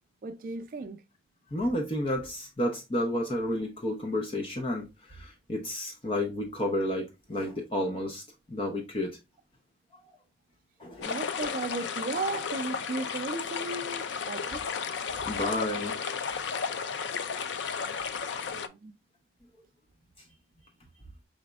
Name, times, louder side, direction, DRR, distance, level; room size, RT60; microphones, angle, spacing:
voice 1, 0.2-1.0 11.0-14.6 18.4-18.9, right 3 dB, 50° right, 0.4 m, -35 dB
voice 2, 1.5-8.2 8.5-9.2 9.9-10.0 10.8-11.2 15.2-16.0, left 1 dB, 30° left, 0.6 m, -31 dB
sound 1, 11.0-18.7, left 6 dB, 85° left, 0.4 m, -33 dB
4.9 x 4.1 x 2.3 m
head